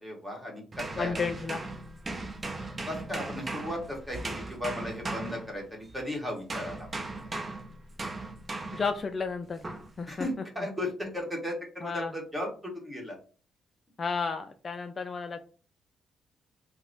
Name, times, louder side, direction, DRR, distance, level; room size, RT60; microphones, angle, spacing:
voice 1, 0.0-1.2 2.8-6.9 10.1-13.2, left 1 dB, 5° right, -1 dB, 1.4 m, -36 dB
sound 1, 0.7-6.0 6.5-9.0 9.6-9.9, right 2 dB, 30° right, 0.6 m, -38 dB
voice 2, 1.0-1.7 8.7-9.7 10.0-10.4 11.8-12.1 14.0-15.4, left 5 dB, 35° left, 7 dB, 0.3 m, -32 dB
2.9 x 2.1 x 4.0 m, 0.38 s
cardioid pair, 90°, 0 cm